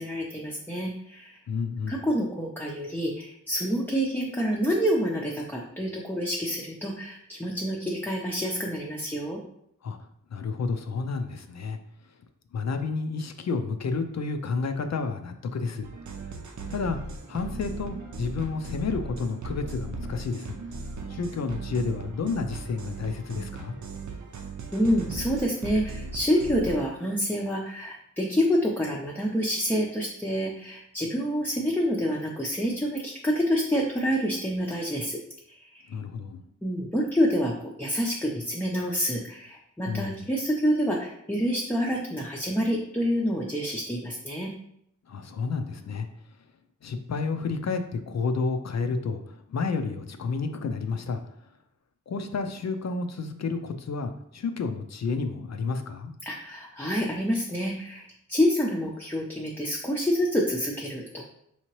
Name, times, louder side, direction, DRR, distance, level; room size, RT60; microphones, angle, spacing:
voice 1, 0.0-1.4 1.9-9.4 24.7-35.2 35.5-35.9 36.6-44.5 56.2-61.3, equal, 5° left, -2 dB, 0.5 m, -27 dB
voice 2, 1.5-2.0 9.8-10.0 10.3-11.8 12.5-15.9 16.7-17.0 17.3-20.6 21.1-23.8 35.9-36.4 39.9-40.3 45.1-46.1 46.8-51.2 52.1-56.1, left 4 dB, 60° left, 7 dB, 0.4 m, -30 dB
sound 1, 15.8-26.8, right 3 dB, 70° right, 0.6 m, -38 dB
5.5 x 2.9 x 3.0 m, 0.74 s
wide cardioid pair, 130°, 31 cm